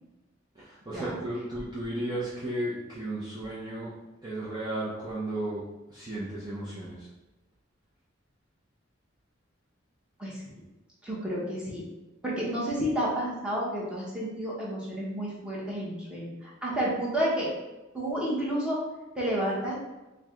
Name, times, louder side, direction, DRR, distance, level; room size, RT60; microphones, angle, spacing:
voice 1, 0.5-3.9 4.2-5.6 5.9-7.1, right 1 dB, 20° right, -9 dB, 0.7 m, -34 dB
voice 2, 11.0-11.8 12.2-17.5 17.9-18.8 19.1-19.8, equal, 5° right, -6 dB, 1.1 m, -30 dB
4.6 x 2.2 x 3.7 m, 1.1 s
head